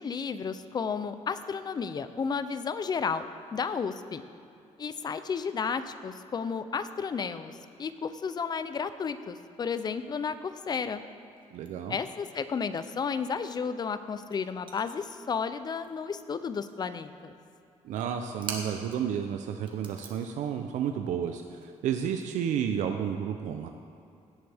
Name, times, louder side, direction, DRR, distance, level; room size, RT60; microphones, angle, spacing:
voice 1, 0.0-4.2 4.8-11.0 11.9-17.3, left 5 dB, 35° left, 12 dB, 0.5 m, -33 dB
sound 1, 11.4-12.4 12.7-16.2 16.4-17.0 17.9-19.2 19.5-22.8, right 4 dB, 40° right, 1.4 m, -45 dB
voice 2, 11.5-12.0 17.8-23.7, right 8 dB, 80° right, 6 dB, 0.6 m, -31 dB
17.0 x 7.8 x 3.5 m, 2.6 s
cardioid pair, 120°, 12 cm